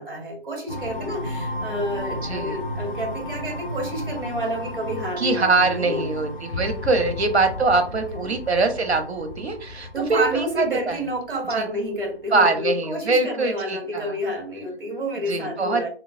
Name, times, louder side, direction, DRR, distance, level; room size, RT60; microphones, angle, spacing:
voice 1, 0.0-6.0 6.9-7.0 8.2-8.3 9.9-15.9, equal, 60° right, 0 dB, 1.5 m, -29 dB
sound 1, 0.7-11.2, left 1 dB, ahead, 0.7 m, -34 dB
voice 2, 2.2-2.6 5.2-11.0 11.5-11.7 12.3-14.1 15.3-15.9, right 3 dB, 85° right, 7 dB, 0.8 m, -23 dB
sound 2, 6.5-12.7, left 4 dB, 75° left, 0.5 m, -38 dB
3.0 x 2.3 x 2.7 m, 0.41 s
figure-of-eight pair, 165°, 32 cm